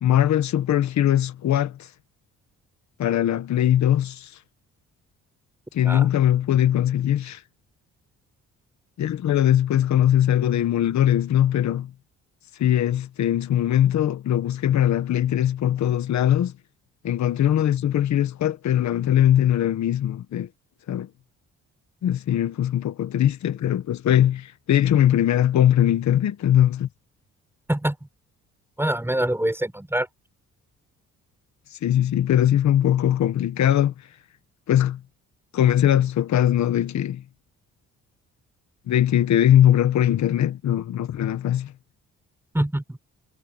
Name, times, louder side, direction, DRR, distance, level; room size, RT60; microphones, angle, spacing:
voice 1, 0.0-1.8 3.0-4.3 5.7-7.4 9.0-11.9 12.6-16.5 17.0-20.5 20.9-21.1 22.0-26.9 31.8-33.9 34.7-35.0 35.5-37.2 38.9-41.7, left 11 dB, 65° left, 1.6 m, -21 dB
voice 2, 28.8-30.1 42.5-43.0, right 1 dB, 10° right, 5.5 m, -24 dB
cardioid pair, 90°, 30 cm